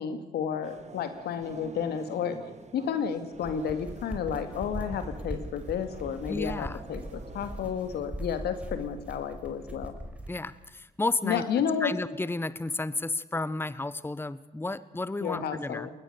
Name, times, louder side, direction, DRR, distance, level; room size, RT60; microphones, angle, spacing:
voice 1, 0.0-2.4 2.7-9.9 11.2-11.9 15.2-15.9, left 7 dB, 75° left, 10 dB, 2.2 m, -31 dB
sound 1, 0.6-8.0, right 4 dB, 45° right, 2.0 m, -49 dB
sound 2, 3.2-10.4, right 1 dB, 5° right, 4.4 m, -40 dB
voice 2, 6.3-6.8 10.3-11.4 11.8-15.9, left 2 dB, 15° left, 17 dB, 1.0 m, -32 dB
22.0 x 19.0 x 6.8 m, 1.1 s
supercardioid pair, 50°, 17 cm